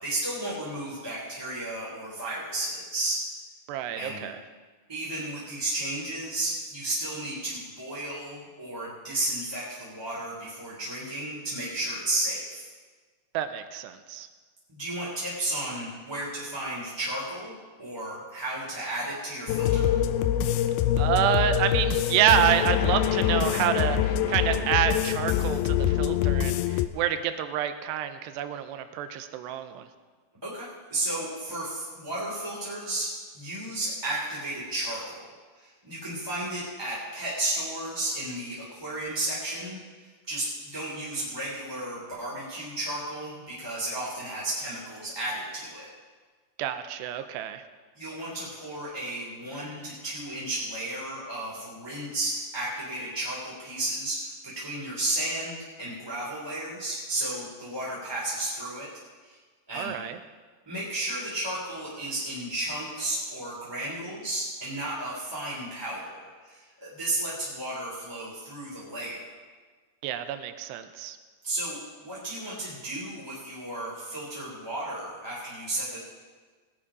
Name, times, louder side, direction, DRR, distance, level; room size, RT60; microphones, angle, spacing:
voice 1, 0.0-3.2 3.9-4.2 4.9-12.7 14.7-19.9 30.4-35.2 35.5-45.9 47.9-58.9 59.2-59.4 59.7-59.9 60.7-69.2 71.4-76.0, right 1 dB, 5° right, -7 dB, 2.2 m, -33 dB
voice 2, 3.7-4.4 13.3-14.3 21.0-29.9 46.6-47.6 59.7-60.2 70.0-71.2, right 10 dB, 90° right, 10 dB, 2.8 m, -28 dB
sound 1, 19.5-26.9, left 10 dB, 85° left, 2.3 m, -25 dB
19.0 x 8.7 x 5.0 m, 1.4 s
omnidirectional pair, 4.9 m